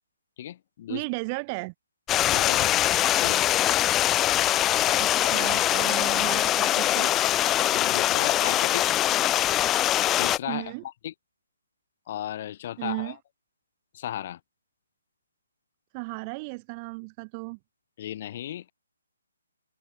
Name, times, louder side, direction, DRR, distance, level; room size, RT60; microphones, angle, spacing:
voice 1, 0.4-1.0 2.3-2.8 3.2-3.5 7.7-8.9 10.2-11.1 12.1-13.2 13.9-14.4 18.0-18.7, left 12 dB, 40° left, 2.6 m, -35 dB
voice 2, 0.9-1.7 5.0-7.1 10.5-10.8 12.8-13.2 15.9-17.6, right 30 dB, 25° right, 0.9 m, -34 dB
Stream, 2.1-10.4, left 13 dB, 15° left, 0.7 m, -23 dB
hypercardioid pair, 160°, 0 cm